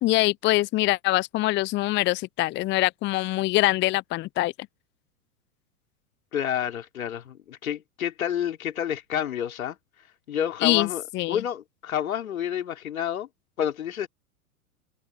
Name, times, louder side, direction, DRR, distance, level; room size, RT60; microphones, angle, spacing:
voice 1, 0.0-4.5 10.6-10.9 11.1-11.4, left 18 dB, 25° left, 0.8 m, -24 dB
voice 2, 6.3-9.8 10.3-13.3 13.6-14.1, left 9 dB, 65° left, 3.7 m, -29 dB
figure-of-eight pair, 100°, 45 cm